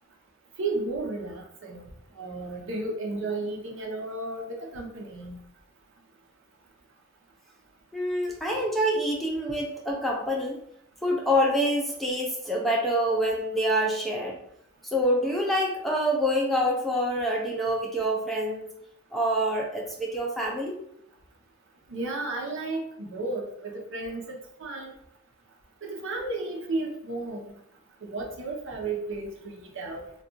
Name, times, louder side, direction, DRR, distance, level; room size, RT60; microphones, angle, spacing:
voice 1, 0.6-1.9 2.2-5.4 21.9-24.9 25.8-27.4 28.0-30.0, right 2 dB, 60° right, 2 dB, 0.6 m, -33 dB
voice 2, 7.9-10.6 11.0-14.4 14.9-18.7 19.1-20.8, equal, ahead, -2 dB, 0.4 m, -26 dB
2.3 x 2.3 x 3.8 m, 0.71 s
head